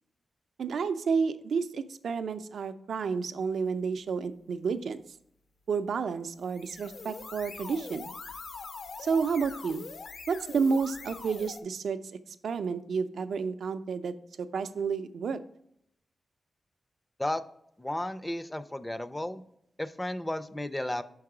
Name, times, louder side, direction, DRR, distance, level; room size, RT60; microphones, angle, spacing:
voice 1, 0.6-5.0 5.7-8.1 9.0-9.8 10.3-12.0 12.3-15.4, right 5 dB, 85° right, 10 dB, 0.4 m, -30 dB
sound 1, 6.4-11.6, left 4 dB, 65° left, 0.5 m, -43 dB
voice 2, 17.8-19.4 19.8-21.0, left 1 dB, 10° left, 12 dB, 0.3 m, -33 dB
5.9 x 4.7 x 4.8 m, 0.73 s
wide cardioid pair, 125°, 0 cm